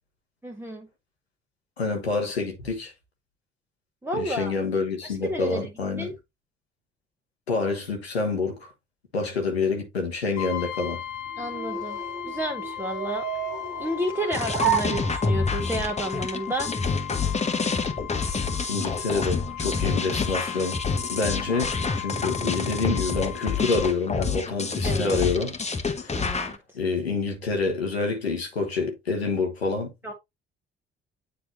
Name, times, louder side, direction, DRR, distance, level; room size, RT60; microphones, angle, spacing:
voice 1, 0.4-0.9 4.0-4.6 5.0-5.7 6.0-6.1 11.4-12.0 12.2-13.2 13.8-16.7 24.8-25.3 26.2-26.6 30.0-30.1, right 1 dB, 5° right, 1.2 m, -31 dB
voice 2, 1.8-2.9 4.1-6.1 7.5-8.6 9.1-11.0 18.7-20.8 21.1-25.5 26.0-26.1 26.7-29.9, left 4 dB, 85° left, 1.1 m, -27 dB
Brass instrument, 10.4-24.0, left 12 dB, 65° left, 0.8 m, -37 dB
sound 1, 10.7-15.7, right 9 dB, 70° right, 1.9 m, -32 dB
sound 2, 14.3-26.6, left 4 dB, 20° left, 1.1 m, -28 dB
9.2 x 3.4 x 3.0 m
figure-of-eight pair, 40°, 30 cm